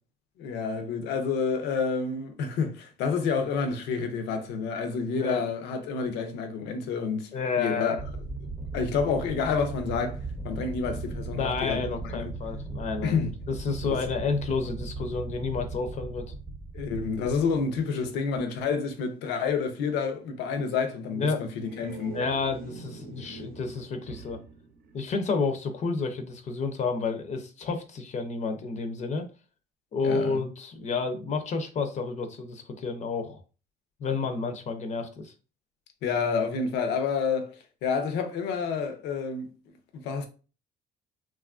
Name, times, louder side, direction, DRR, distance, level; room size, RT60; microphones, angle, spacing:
voice 1, 0.4-7.3 7.6-8.0 8.7-12.3 13.0-13.3 16.7-22.2 30.0-30.4 36.0-37.6 37.8-39.5 39.9-40.3, left 5 dB, 85° left, 0.6 m, -29 dB
voice 2, 7.3-8.0 11.3-13.2 13.5-16.2 21.1-21.5 22.1-24.4 24.9-29.3 29.9-33.4 34.0-35.3, left 4 dB, 45° left, 0.5 m, -30 dB
sound 1, 8.0-18.1, right 3 dB, 5° right, 0.5 m, -38 dB
sound 2, 21.4-25.7, right 5 dB, 60° right, 0.6 m, -44 dB
2.9 x 2.4 x 2.4 m
cardioid pair, 110°, 17 cm